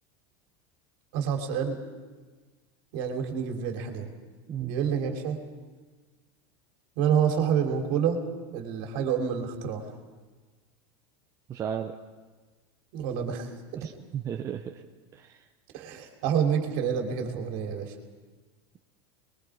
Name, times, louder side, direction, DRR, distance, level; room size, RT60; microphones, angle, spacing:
voice 1, 1.1-1.8 2.9-4.1 4.6-5.4 7.0-8.2 8.5-9.9 12.9-13.5 15.7-17.9, right 7 dB, 55° right, 3 dB, 3.1 m, -28 dB
voice 2, 4.5-4.8 11.5-11.9 13.8-14.8 15.1-15.4, right 9 dB, 25° right, 3 dB, 0.7 m, -34 dB
28.0 x 22.0 x 4.9 m, 1.3 s
supercardioid pair, 160°, 13 cm